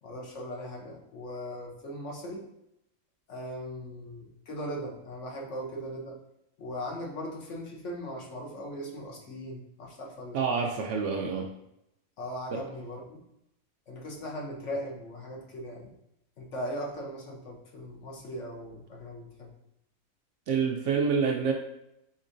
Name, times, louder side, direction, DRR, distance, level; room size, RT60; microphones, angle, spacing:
voice 1, 0.0-2.5 3.3-6.2 6.6-10.4 12.2-13.2 13.9-15.9 16.4-19.5, equal, 60° left, -1 dB, 1.2 m, -39 dB
voice 2, 10.3-11.5 12.5-12.6 20.5-21.5, right 5 dB, 65° right, 1 dB, 0.8 m, -27 dB
5.3 x 3.6 x 2.6 m, 0.81 s
omnidirectional pair, 1.5 m